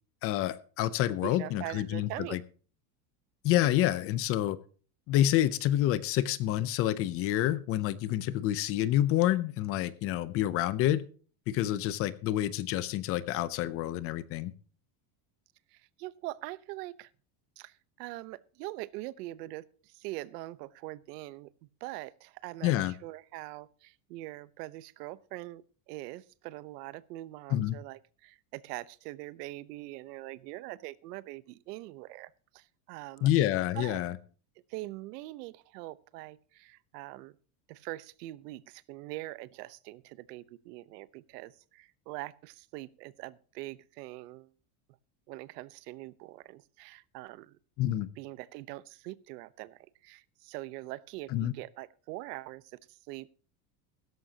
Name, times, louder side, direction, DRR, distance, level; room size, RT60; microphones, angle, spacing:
voice 1, 0.2-2.4 3.4-4.6 5.1-11.0 11.5-14.5 22.6-22.9 27.5-27.8 33.2-34.2 47.8-48.1 51.3-51.5, left 13 dB, 30° left, 17 dB, 0.6 m, -28 dB
voice 2, 1.2-2.4 15.7-17.1 17.6-21.5 21.8-33.3 33.7-34.0 34.7-37.4 37.7-44.5 45.3-47.6 48.2-52.6 52.9-53.3, right 18 dB, 75° right, 18 dB, 1.0 m, -43 dB
16.5 x 13.5 x 2.8 m, 0.39 s
cardioid pair, 180°, 47 cm